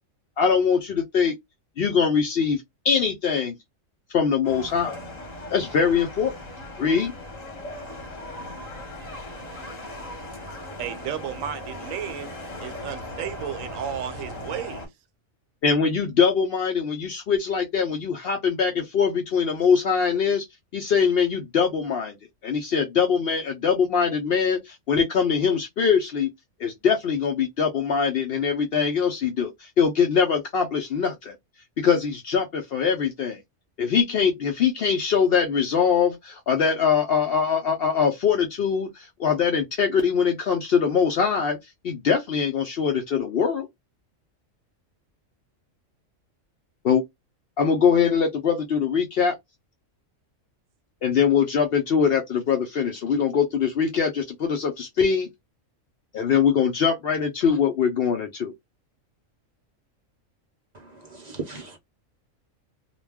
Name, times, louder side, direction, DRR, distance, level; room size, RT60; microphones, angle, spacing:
voice 1, 0.4-1.4 1.8-3.6 4.1-5.0 5.5-6.3 6.8-7.1 15.6-20.4 20.7-22.2 22.4-26.3 26.6-31.3 31.8-33.4 33.8-41.6 41.8-43.7 46.8-47.0 47.6-49.3 51.0-55.3 56.1-58.5, left 6 dB, 65° left, 0.6 m, -22 dB
sound 1, 4.4-14.9, left 1 dB, 35° left, 0.9 m, -38 dB
voice 2, 10.8-12.3 12.6-14.9, right 9 dB, 80° right, 0.9 m, -33 dB
voice 3, 60.7-61.8, right 4 dB, 45° right, 0.5 m, -37 dB
2.3 x 2.1 x 3.3 m
omnidirectional pair, 1.4 m